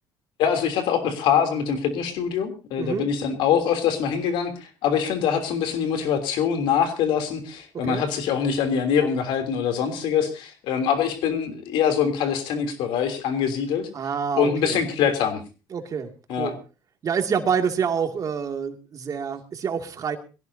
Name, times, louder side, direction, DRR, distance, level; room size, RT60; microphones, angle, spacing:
voice 1, 0.4-13.9 14.3-15.4 16.3-16.5, left 7 dB, 75° left, 7 dB, 3.2 m, -24 dB
voice 2, 2.8-3.1 7.8-8.0 13.9-14.8 15.7-16.1 16.4-16.6 17.0-20.2, right 6 dB, 45° right, 5 dB, 2.4 m, -27 dB
22.0 x 16.5 x 2.8 m, 0.32 s
cardioid pair, 105°, 8 cm